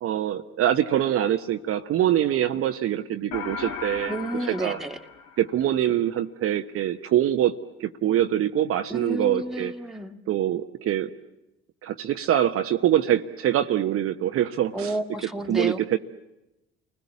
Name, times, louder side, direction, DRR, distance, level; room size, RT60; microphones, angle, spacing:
voice 1, 0.0-4.1 4.6-4.8 5.4-7.5 7.8-9.7 10.3-11.1 11.8-14.9 15.5-16.0, right 11 dB, 50° right, 6 dB, 1.1 m, -24 dB
sound 1, 3.3-5.9, left 6 dB, 55° left, 2.2 m, -36 dB
voice 2, 4.1-5.0 8.9-10.2 14.7-15.8, right 1 dB, ahead, 2 dB, 2.2 m, -30 dB
29.5 x 20.5 x 8.5 m, 0.92 s
figure-of-eight pair, 55°, 30 cm